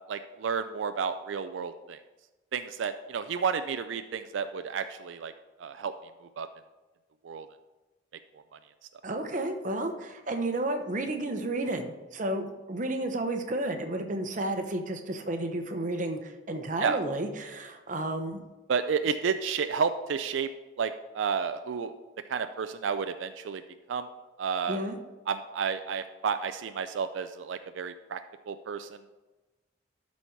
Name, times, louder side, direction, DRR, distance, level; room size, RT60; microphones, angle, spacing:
voice 1, 0.1-2.0 2.5-5.3 5.6-5.9 6.4-6.5 7.2-7.5 8.5-8.6 16.8-17.0 18.7-20.5 20.8-22.0 22.3-23.6 23.9-24.1 24.4-24.8 25.3-28.2 28.5-29.0, right 6 dB, 85° right, 9 dB, 0.4 m, -31 dB
voice 2, 9.0-18.4 24.7-25.0, right 1 dB, 45° right, 5 dB, 0.8 m, -32 dB
12.5 x 4.2 x 4.5 m, 1.1 s
head